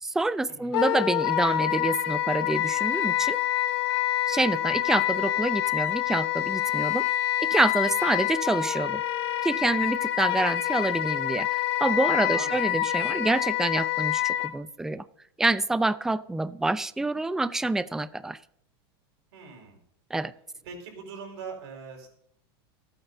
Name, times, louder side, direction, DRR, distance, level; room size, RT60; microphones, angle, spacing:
voice 1, 0.0-3.4 4.3-7.1 7.4-9.0 9.4-15.0 15.4-18.4 20.1-20.3, right 2 dB, 5° right, 15 dB, 0.4 m, -27 dB
Wind instrument woodwind instrument, 0.7-14.5, left 13 dB, 75° left, 1.2 m, -27 dB
voice 2, 12.3-12.8 19.3-19.8 20.6-22.1, right 5 dB, 80° right, 2 dB, 4.8 m, -41 dB
25.5 x 8.8 x 2.7 m, 0.69 s
supercardioid pair, 135°, 14 cm